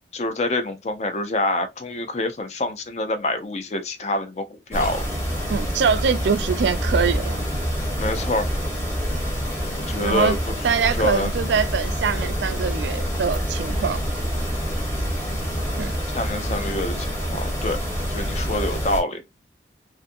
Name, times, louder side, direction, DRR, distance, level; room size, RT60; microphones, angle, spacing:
voice 1, 0.1-5.0 8.0-8.5 9.8-10.5 10.9-11.3 16.1-17.8 18.1-19.2, left 2 dB, 40° left, 0.4 m, -26 dB
sound 1, 4.7-19.0, equal, 15° left, 0.8 m, -26 dB
voice 2, 5.5-7.3 10.0-10.4 10.6-14.0 15.8-15.9, right 6 dB, 80° right, 0.4 m, -23 dB
2.6 x 2.5 x 2.4 m
head